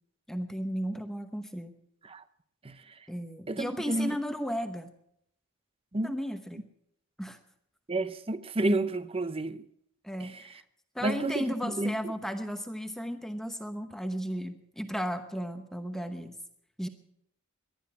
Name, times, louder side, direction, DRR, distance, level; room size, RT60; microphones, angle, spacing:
voice 1, 0.3-1.8 3.1-4.9 6.0-6.6 7.2-7.4 10.0-10.6 10.9-16.4 16.8-16.9, equal, ahead, 0.9 m, -35 dB
voice 2, 3.5-4.2 5.9-6.1 7.9-9.6 10.2-10.4 11.0-11.9, right 2 dB, 25° right, 0.7 m, -30 dB
19.0 x 12.0 x 5.8 m
head